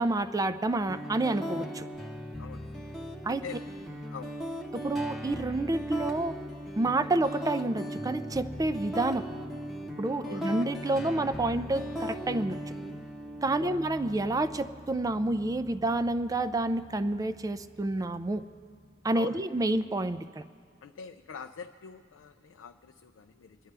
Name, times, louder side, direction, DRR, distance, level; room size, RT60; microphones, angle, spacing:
voice 1, 0.0-1.8 3.2-3.4 4.7-6.4 6.8-9.3 10.0-12.6 13.4-18.4 19.0-20.4, right 2 dB, 20° right, 12 dB, 0.4 m, -29 dB
sound 1, 0.9-18.9, equal, ahead, 0.8 m, -39 dB
voice 2, 2.4-2.9 3.4-3.7 4.1-4.3 10.2-10.5 13.6-13.8 19.1-19.4 20.8-23.6, left 6 dB, 70° left, 6 dB, 0.4 m, -44 dB
25.0 x 11.0 x 3.4 m, 2.2 s
head